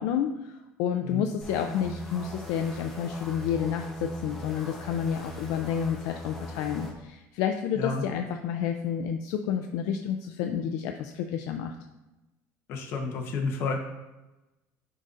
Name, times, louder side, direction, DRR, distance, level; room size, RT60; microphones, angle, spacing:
voice 1, 0.0-11.8, left 8 dB, 65° left, 6 dB, 0.4 m, -30 dB
sound 1, 1.4-6.9, right 1 dB, 5° left, 0.8 m, -40 dB
voice 2, 12.7-13.8, left 4 dB, 45° left, 2 dB, 0.9 m, -30 dB
10.5 x 3.9 x 2.5 m, 1.0 s
cardioid pair, 180°, 6 cm